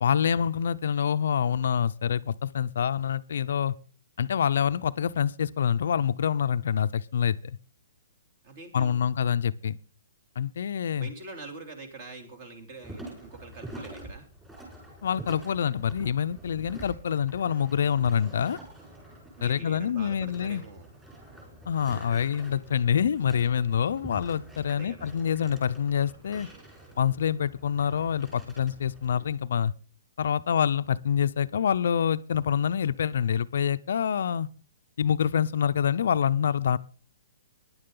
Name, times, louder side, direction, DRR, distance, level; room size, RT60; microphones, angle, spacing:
voice 1, 0.0-3.8 4.2-7.6 8.7-9.8 10.4-11.1 15.0-18.6 19.4-20.6 21.7-26.5 27.0-29.7 30.2-34.5 35.0-36.8, left 8 dB, 65° left, 0.6 m, -26 dB
voice 2, 8.4-9.0 10.8-14.3 19.3-20.9 24.7-25.1, right 3 dB, 30° right, 3.1 m, -44 dB
sound 1, 12.8-29.3, right 1 dB, 5° right, 4.7 m, -46 dB
15.5 x 10.5 x 3.8 m
hypercardioid pair, 165°, 0 cm